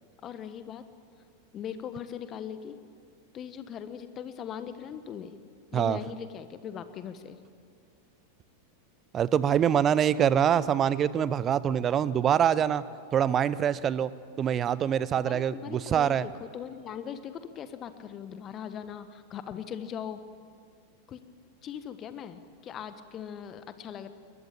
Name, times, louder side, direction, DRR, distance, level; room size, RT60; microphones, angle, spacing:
voice 1, 0.2-0.8 1.5-2.8 3.3-5.4 5.7-7.4 15.2-20.2 21.1-21.2 21.6-24.1, left 8 dB, 30° left, 11 dB, 1.3 m, -40 dB
voice 2, 9.1-12.8 13.1-14.1 14.4-16.3, right 9 dB, 25° right, 18 dB, 0.7 m, -25 dB
22.0 x 20.5 x 8.8 m, 2.3 s
figure-of-eight pair, 90°, 0 cm